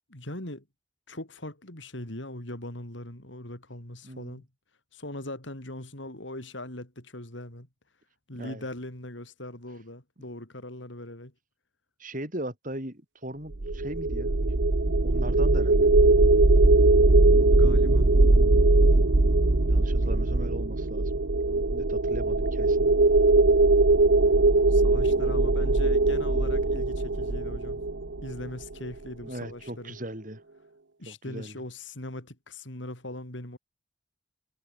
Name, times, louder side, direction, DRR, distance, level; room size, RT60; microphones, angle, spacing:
voice 1, 0.1-0.6 1.1-4.5 4.9-7.7 8.3-11.3 17.5-18.1 24.7-27.8 28.2-30.0 31.0-33.6, left 1 dB, 70° left, 4.3 m, -40 dB
voice 2, 4.0-4.3 8.4-8.6 12.0-14.5 15.0-15.9 19.6-21.1 21.5-23.0 29.2-30.4 31.1-31.5, right 1 dB, 40° right, 7.8 m, -39 dB
sound 1, 13.5-28.6, right 2 dB, 65° right, 1.1 m, -21 dB
head